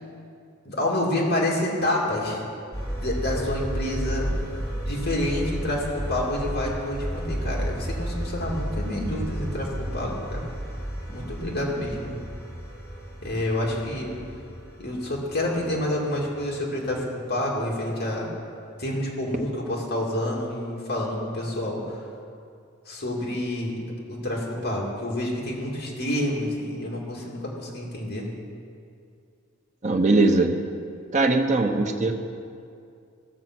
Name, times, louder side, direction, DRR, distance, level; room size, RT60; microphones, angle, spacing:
voice 1, 0.6-2.4 2.9-10.5 11.1-12.1 13.2-14.2 14.8-18.3 18.8-22.0 22.9-23.7 24.1-28.3, left 1 dB, 55° left, -3 dB, 2.4 m, -28 dB
sound 1, 2.7-16.6 16.8-16.9, equal, 15° left, 2.3 m, -32 dB
voice 2, 29.8-30.5 31.1-32.1, right 2 dB, 35° right, 3 dB, 0.9 m, -20 dB
16.0 x 6.9 x 6.1 m, 2.4 s
head